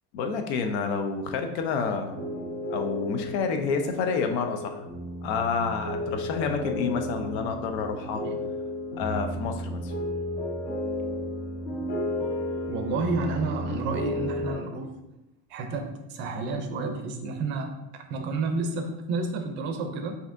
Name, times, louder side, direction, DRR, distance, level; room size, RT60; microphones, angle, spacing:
voice 1, 0.1-2.3 2.7-4.8 5.2-8.2 9.0-10.0, left 5 dB, 90° left, 5 dB, 0.7 m, -29 dB
sound 1, 2.1-14.5, left 1 dB, 55° left, 1.3 m, -33 dB
voice 2, 12.7-14.9 15.5-17.7 18.1-20.2, right 3 dB, 35° right, 5 dB, 0.4 m, -30 dB
5.7 x 2.7 x 2.5 m, 0.94 s
cardioid pair, 175°, 32 cm